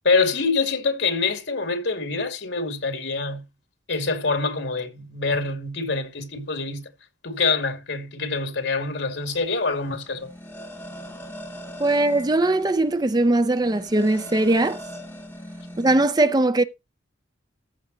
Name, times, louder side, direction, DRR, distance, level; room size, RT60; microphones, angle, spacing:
voice 1, 0.0-3.5 3.9-6.9 7.2-10.3, left 4 dB, 80° left, 2.4 m, -25 dB
sound 1, 9.2-16.1, equal, 10° left, 3.6 m, -41 dB
voice 2, 11.8-14.8 15.8-16.6, right 2 dB, 20° right, 0.6 m, -20 dB
14.5 x 5.1 x 4.1 m
head